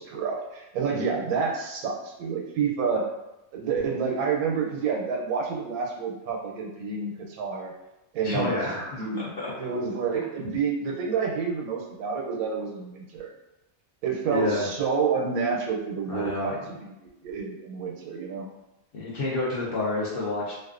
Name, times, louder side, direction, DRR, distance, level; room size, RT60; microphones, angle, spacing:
voice 1, 0.0-3.1 3.5-7.7 8.1-9.3 9.6-13.3 14.0-16.9 17.2-18.5, right 5 dB, 90° right, 0 dB, 1.0 m, -29 dB
voice 2, 8.2-9.5 14.3-14.7 16.1-16.5 18.9-20.5, left 2 dB, 60° left, -6 dB, 0.6 m, -29 dB
2.4 x 2.3 x 2.4 m, 0.94 s
omnidirectional pair, 1.4 m